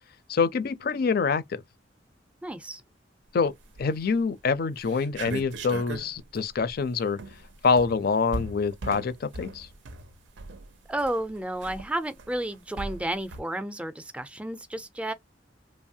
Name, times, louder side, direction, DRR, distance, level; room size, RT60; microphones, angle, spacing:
voice 1, 0.3-1.6 3.3-3.5 3.8-7.2 7.6-9.7, left 5 dB, 55° left, 0.4 m, -25 dB
voice 2, 2.4-2.8 10.9-15.1, right 1 dB, 5° right, 0.4 m, -32 dB
sound 1, 3.6-4.1 4.5-4.6 4.8-13.4, right 3 dB, 80° right, 0.5 m, -39 dB
3.1 x 2.0 x 2.7 m
head